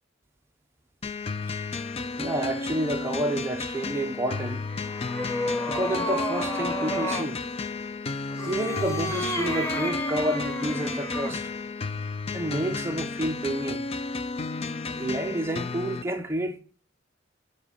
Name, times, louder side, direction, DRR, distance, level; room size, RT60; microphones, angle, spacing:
sound 1, 1.0-16.0, left 3 dB, 30° left, 0.4 m, -33 dB
voice 1, 2.2-4.6 5.7-7.4 8.5-11.5 12.3-13.8 14.8-16.6, right 1 dB, 15° right, 0.7 m, -29 dB
sound 2, 4.4-7.3 8.3-11.4, equal, 15° left, 0.9 m, -31 dB
7.8 x 4.2 x 5.5 m
head